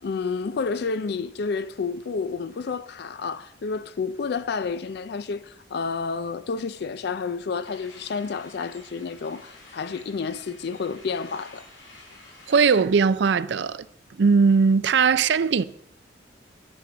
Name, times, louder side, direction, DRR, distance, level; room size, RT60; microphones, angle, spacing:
voice 1, 0.0-11.6, left 5 dB, 60° left, 0.4 m, -30 dB
sound 1, 7.6-12.8, left 2 dB, 85° left, 3.5 m, -50 dB
voice 2, 12.5-13.8 14.2-15.6, right 5 dB, 65° right, 0.4 m, -19 dB
11.0 x 6.8 x 6.1 m
head